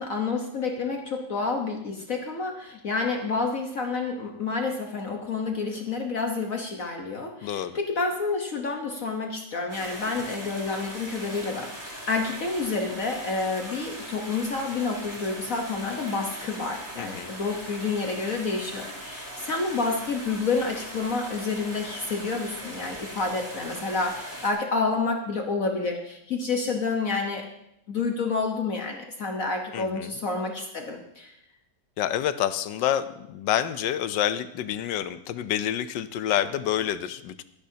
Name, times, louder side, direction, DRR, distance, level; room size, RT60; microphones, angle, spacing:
voice 1, 0.0-11.7 12.1-27.4 27.9-31.3, left 4 dB, 50° left, 2 dB, 1.5 m, -29 dB
voice 2, 7.4-7.8 17.0-17.3 29.7-30.1 32.0-37.4, left 10 dB, 85° left, 13 dB, 1.4 m, -28 dB
sound 1, 9.7-24.5, equal, 10° right, 3.3 m, -40 dB
23.0 x 10.5 x 2.8 m, 0.79 s
omnidirectional pair, 1.9 m